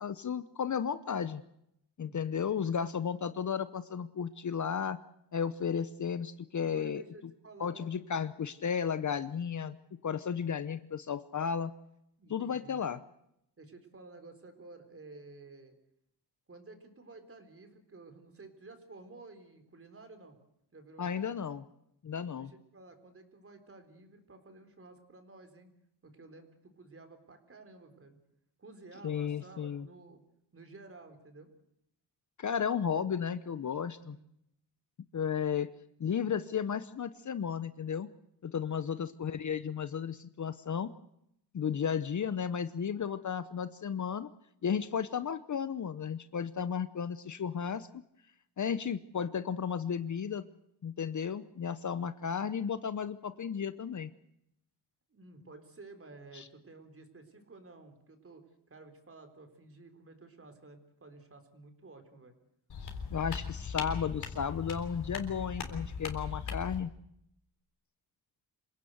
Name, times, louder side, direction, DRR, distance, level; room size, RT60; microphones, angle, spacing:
voice 1, 0.0-1.4 2.0-5.0 5.3-7.0 7.6-9.8 10.0-11.7 12.3-13.0 21.0-21.6 22.0-22.5 29.0-29.9 32.4-34.2 35.1-35.7 36.0-38.1 38.4-40.9 41.5-44.3 44.6-47.9 48.6-50.4 50.8-54.1 56.3-56.4 63.1-66.9, left 7 dB, 45° left, 13 dB, 0.8 m, -34 dB
voice 2, 2.0-2.7 6.6-7.9 10.2-10.4 12.2-12.9 13.6-15.7 16.5-20.4 20.7-21.3 22.4-25.7 26.0-28.2 28.6-30.2 30.5-31.5 34.0-34.2 38.7-39.1 55.1-62.3, right 3 dB, 30° right, 7 dB, 4.0 m, -53 dB
sound 1, 62.7-66.8, left 5 dB, 65° left, 3.9 m, -39 dB
27.0 x 17.0 x 8.1 m, 0.78 s
wide cardioid pair, 130°, 42 cm